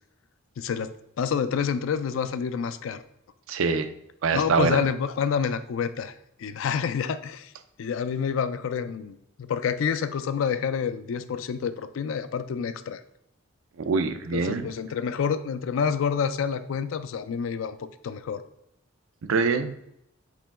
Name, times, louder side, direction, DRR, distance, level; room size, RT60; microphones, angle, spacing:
voice 1, 0.6-0.9 1.2-3.0 4.3-6.1 6.4-7.5 7.8-13.0 14.3-18.4, left 6 dB, 70° left, 12 dB, 0.4 m, -28 dB
voice 2, 3.5-3.9 4.2-4.8 13.8-14.7 19.3-19.7, right 4 dB, 75° right, 9 dB, 0.4 m, -24 dB
5.0 x 3.0 x 3.4 m, 0.78 s
head